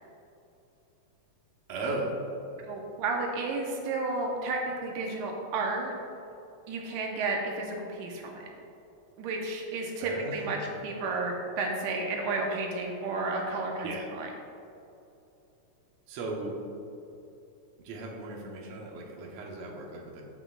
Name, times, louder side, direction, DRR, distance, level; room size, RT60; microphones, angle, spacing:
voice 1, 1.7-2.1 10.0-10.7 13.8-14.1 16.1-16.6 17.8-20.2, right 2 dB, 70° right, -1 dB, 2.3 m, -37 dB
voice 2, 2.7-5.9 6.7-8.5 9.2-10.6 10.8-13.9 14.2-14.3, right 3 dB, 90° right, 0 dB, 2.4 m, -32 dB
15.0 x 6.0 x 2.4 m, 2.8 s
omnidirectional pair, 3.4 m